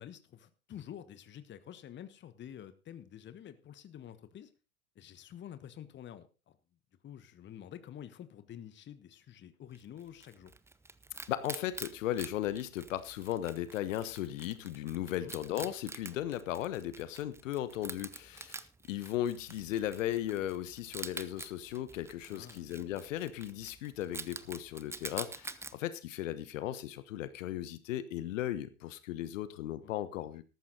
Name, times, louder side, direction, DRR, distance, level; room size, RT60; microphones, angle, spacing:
voice 1, 0.0-4.5 4.9-6.6 7.0-10.5 15.1-15.3 22.3-22.7 29.8-29.9, left 10 dB, 25° left, 13 dB, 1.3 m, -49 dB
Wild animals, 9.7-25.7, right 3 dB, 5° right, 0.7 m, -47 dB
voice 2, 11.3-30.4, left 12 dB, 65° left, 14 dB, 1.3 m, -36 dB
14.0 x 11.5 x 4.0 m, 0.31 s
hypercardioid pair, 90°, 42 cm